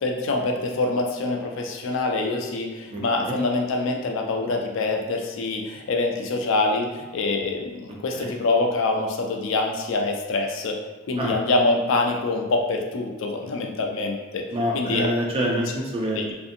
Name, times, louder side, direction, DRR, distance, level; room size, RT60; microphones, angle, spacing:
voice 1, 0.0-10.8 11.1-14.4 14.7-15.1 16.2-16.3, left 2 dB, 60° left, 2 dB, 0.3 m, -25 dB
voice 2, 2.9-3.4 8.1-8.3 11.2-11.3 14.5-16.2, equal, 25° right, -2 dB, 0.4 m, -26 dB
2.5 x 2.5 x 2.5 m, 1.2 s
head